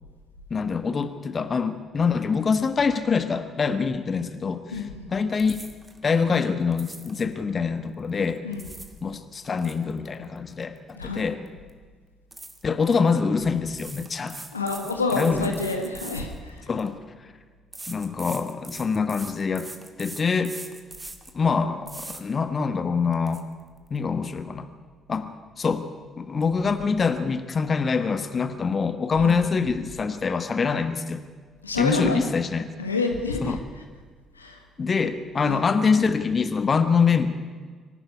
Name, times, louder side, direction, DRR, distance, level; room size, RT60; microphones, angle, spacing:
voice 1, 0.5-4.6 5.1-5.6 6.0-8.4 9.0-11.4 12.6-14.4 15.1-15.5 16.7-17.0 17.9-19.7 20.0-20.6 21.3-23.4 23.9-24.7 25.1-25.3 25.6-25.8 26.2-31.2 31.8-32.7 33.4-33.6 34.8-37.3, left 5 dB, 35° left, 10 dB, 1.5 m, -24 dB
voice 2, 4.7-5.1 8.4-8.6 10.9-11.3 14.5-16.7 29.1-29.4 31.6-32.3 32.8-33.8 34.3-34.6 35.4-35.6, left 3 dB, 85° left, 4 dB, 1.7 m, -28 dB
sound 1, 5.4-6.0 6.7-7.3 8.3-9.0 9.3-11.2 11.5-11.7 12.3-13.0 13.7-16.9 17.7-21.4 21.9-22.2 22.7-22.8 23.1-23.4, right 2 dB, 20° right, 2.4 m, -42 dB
25.0 x 12.0 x 9.8 m, 1.5 s
figure-of-eight pair, 45°, 0 cm